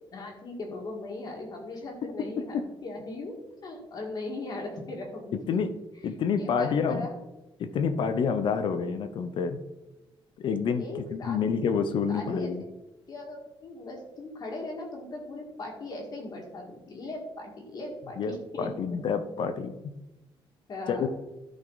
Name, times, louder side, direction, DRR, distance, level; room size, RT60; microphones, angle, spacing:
voice 1, 0.1-3.3 3.6-5.3 6.4-7.2 10.8-11.4 12.1-12.5 13.1-18.7 20.7-21.1, left 2 dB, 45° left, 0 dB, 1.9 m, -38 dB
voice 2, 5.3-5.7 6.0-7.1 7.6-9.6 10.4-12.6 18.2-19.7 20.9-21.1, left 6 dB, 60° left, 10 dB, 0.7 m, -28 dB
12.0 x 5.3 x 4.0 m, 0.98 s
cardioid pair, 155°, 10 cm